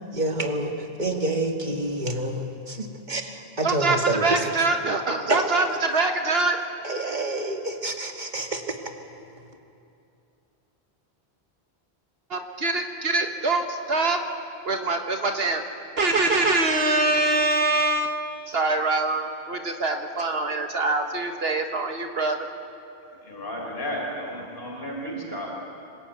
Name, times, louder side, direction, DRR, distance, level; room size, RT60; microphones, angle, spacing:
voice 1, 0.1-4.5 5.3-5.7 6.8-8.8, right 2 dB, 45° right, 3 dB, 2.2 m, -28 dB
voice 2, 3.6-6.6 12.3-14.2 14.6-15.6 16.0-22.5, right 2 dB, 70° right, 5 dB, 1.6 m, -24 dB
voice 3, 23.2-25.5, equal, 65° left, -1 dB, 4.8 m, -33 dB
26.0 x 21.0 x 9.5 m, 2.7 s
omnidirectional pair, 1.1 m